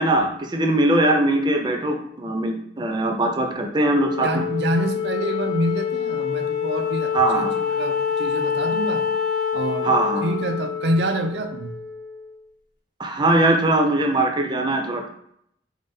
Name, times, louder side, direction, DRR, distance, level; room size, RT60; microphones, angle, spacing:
voice 1, 0.0-4.4 7.1-7.5 9.8-10.3 13.0-15.1, right 1 dB, 25° right, 3 dB, 0.5 m, -21 dB
Wind instrument woodwind instrument, 3.8-12.4, left 7 dB, 60° left, 1.0 m, -26 dB
voice 2, 4.2-9.1 9.5-9.9 10.2-11.8, right 1 dB, 70° right, 5 dB, 0.5 m, -26 dB
4.0 x 3.6 x 3.4 m, 0.71 s
head